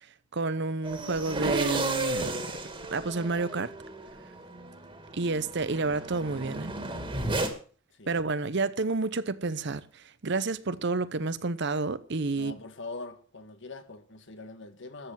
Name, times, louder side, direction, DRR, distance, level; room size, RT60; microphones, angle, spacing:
voice 1, 0.3-2.4 2.9-3.7 5.1-6.7 8.1-12.6, right 3 dB, 60° right, 0.8 m, -30 dB
sound 1, 0.8-7.5, right 2 dB, 25° right, 2.3 m, -33 dB
voice 2, 12.3-15.1, left 3 dB, 65° left, 1.6 m, -43 dB
13.5 x 8.0 x 7.4 m
head